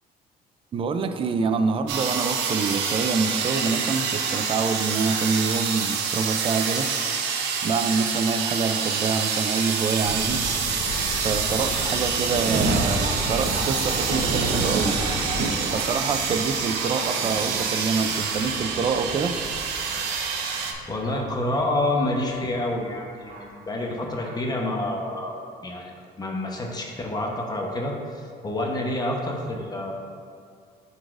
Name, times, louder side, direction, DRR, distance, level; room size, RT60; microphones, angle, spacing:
voice 1, 0.7-6.9 7.6-10.4 11.2-15.0 15.7-19.4, right 5 dB, 30° right, 8 dB, 0.4 m, -26 dB
sound 1, 1.9-20.7, right 6 dB, 90° right, 0.7 m, -27 dB
sound 2, 10.0-15.5, left 2 dB, 65° left, 1.0 m, -34 dB
Thunder, 11.5-21.4 22.2-22.3 23.3-23.4 24.2-24.4, right 2 dB, 55° right, 1.0 m, -31 dB
voice 2, 20.4-25.3 25.6-29.9, left 1 dB, 25° left, 0 dB, 0.9 m, -28 dB
11.5 x 4.1 x 2.5 m, 2.3 s
cardioid pair, 110°, 17 cm